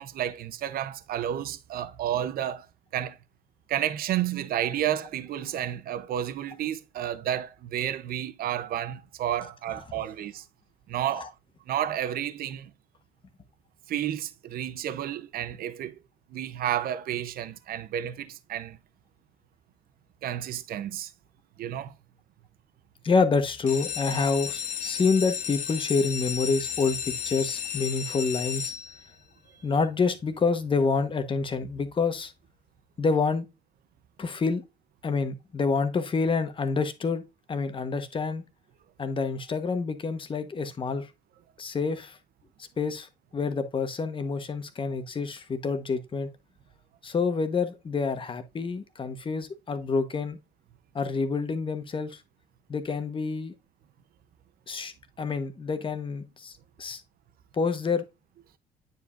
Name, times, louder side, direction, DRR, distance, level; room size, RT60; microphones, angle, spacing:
voice 1, 0.0-2.7 2.9-3.2 3.7-10.4 10.9-11.3 11.7-12.7 13.9-16.0 16.3-18.8 20.2-21.1 21.6-21.9, right 11 dB, 60° right, 0.8 m, -31 dB
voice 2, 23.0-28.7 29.6-32.3 33.0-33.4 34.2-34.6 35.0-37.2 37.5-38.4 39.0-41.1 41.6-42.2 42.8-46.3 47.0-50.4 50.9-52.2 52.7-53.5 54.7-56.5 56.8-57.0 57.5-58.0, left 4 dB, 30° left, 1.2 m, -27 dB
sound 1, 23.5-29.3 29.9-30.4 30.8-30.9 31.1-31.2 31.6-31.8, left 8 dB, 50° left, 1.1 m, -34 dB
9.3 x 4.9 x 2.5 m
cardioid pair, 110°, 17 cm